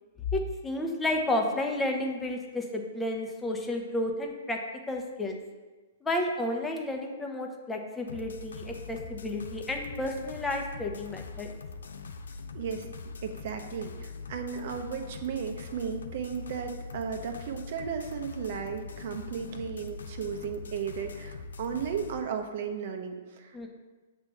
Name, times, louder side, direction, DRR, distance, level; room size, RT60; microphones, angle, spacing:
voice 1, 0.3-4.6 4.9-5.4 6.0-11.5 23.5-23.7, left 1 dB, 10° left, 1 dB, 0.8 m, -31 dB
sound 1, 8.1-22.2, left 4 dB, 70° left, 0.5 m, -42 dB
voice 2, 12.5-12.9 13.2-23.7, right 7 dB, 50° right, 5 dB, 0.8 m, -35 dB
7.3 x 3.2 x 5.4 m, 1.3 s
figure-of-eight pair, 110°, 0 cm